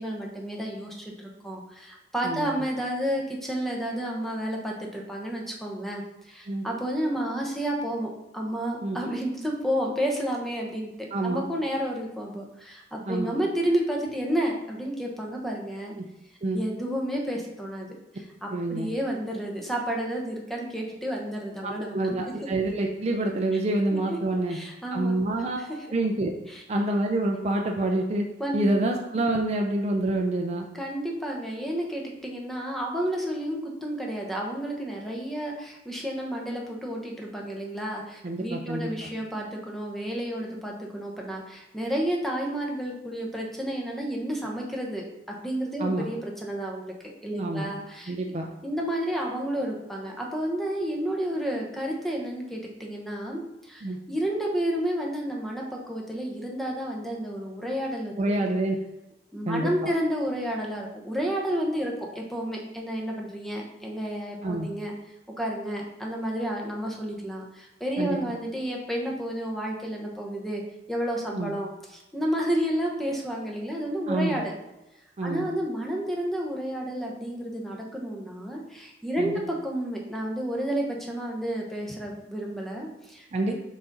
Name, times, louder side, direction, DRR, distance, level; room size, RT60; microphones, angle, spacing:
voice 1, 0.0-10.9 11.2-15.9 16.5-22.3 23.9-24.2 24.5-25.2 25.6-25.8 26.5-26.6 28.4-28.7 30.7-48.1 48.6-58.5 59.3-64.9 65.3-70.6 70.9-74.5 75.2-83.5, equal, ahead, -1 dB, 1.0 m, -31 dB
voice 2, 11.1-11.5 13.1-13.4 16.4-16.6 18.5-18.9 21.6-24.6 24.9-25.6 25.9-26.3 26.7-28.3 28.5-30.7 38.2-39.1 45.8-46.1 47.3-47.7 48.1-48.5 53.8-54.0 58.2-58.8 59.5-59.7 64.4-64.7 68.0-68.2 71.3-71.5 74.1-74.4 75.2-75.5 79.2-79.3 83.3-83.5, right 2 dB, 40° right, 2 dB, 0.5 m, -27 dB
5.8 x 4.1 x 3.9 m, 0.91 s
head